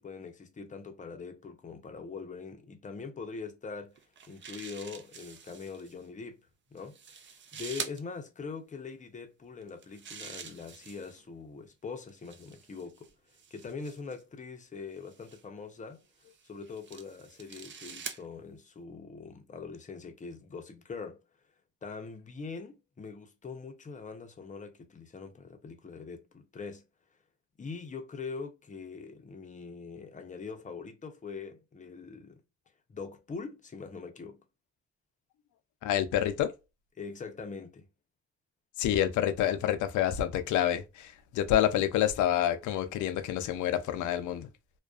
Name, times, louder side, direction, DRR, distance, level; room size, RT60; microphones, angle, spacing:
voice 1, 0.0-4.0 4.3-6.4 6.7-7.0 7.5-13.1 13.5-16.0 16.4-21.2 21.8-26.9 27.6-32.4 32.9-34.4 37.0-37.9, left 4 dB, 25° left, 0.6 m, -43 dB
sound 1, 4.0-5.9 6.8-8.0 9.6-11.2 12.1-14.2 15.1-15.4 16.2-18.2, right 6 dB, 40° right, 0.5 m, -45 dB
voice 2, 35.8-36.5 38.8-44.5, left 11 dB, 75° left, 0.5 m, -28 dB
2.4 x 2.2 x 2.3 m
cardioid pair, 90°, 30 cm